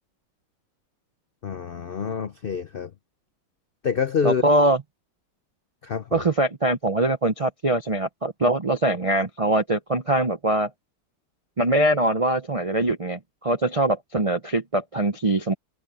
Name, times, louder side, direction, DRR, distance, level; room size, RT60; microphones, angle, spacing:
voice 1, 1.4-2.9 3.8-4.4 5.8-6.3, left 6 dB, 85° left, 0.5 m, -27 dB
voice 2, 4.2-4.8 6.1-10.7 11.6-15.5, right 1 dB, 55° right, 0.3 m, -22 dB
omnidirectional pair, 1.9 m